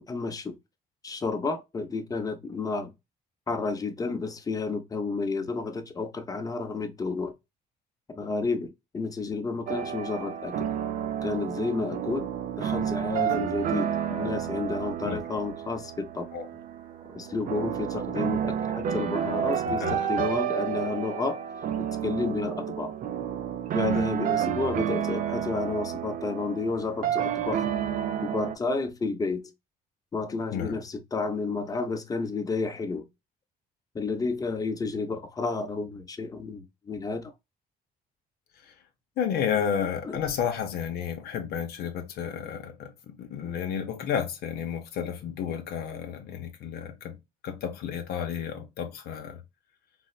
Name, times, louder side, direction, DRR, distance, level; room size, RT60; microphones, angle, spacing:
voice 1, 0.1-0.6 1.0-2.9 3.5-7.3 8.1-10.7 11.2-12.3 12.6-13.9 14.2-16.3 17.1-21.4 21.8-22.9 23.7-27.6 28.2-29.5 30.1-33.1 33.9-37.2 40.0-40.2, left 4 dB, 20° left, 0.6 m, -31 dB
sound 1, 9.7-28.5, right 9 dB, 55° right, 0.4 m, -30 dB
voice 2, 19.7-20.4 23.8-24.1 30.5-30.8 38.6-38.7 39.2-47.2 47.4-49.4, left 8 dB, 70° left, 0.6 m, -32 dB
4.1 x 2.0 x 2.3 m
cardioid pair, 110°, 17 cm